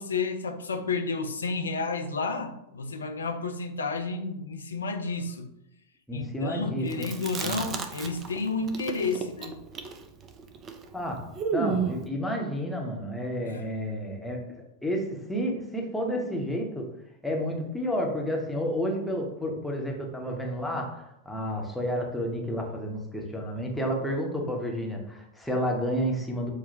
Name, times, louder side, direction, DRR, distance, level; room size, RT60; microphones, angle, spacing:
voice 1, 0.0-5.5 6.1-9.6 13.4-13.7, left 4 dB, 70° left, 6 dB, 0.4 m, -31 dB
voice 2, 6.1-7.1 7.4-7.6 10.9-14.4 14.8-16.9 17.2-26.5, equal, 5° left, -1 dB, 0.8 m, -31 dB
Chewing mastication, 6.9-8.4 8.7-12.1, right 6 dB, 30° right, 0.4 m, -32 dB
6.1 x 2.1 x 2.7 m, 0.84 s
figure-of-eight pair, 90°, 0 cm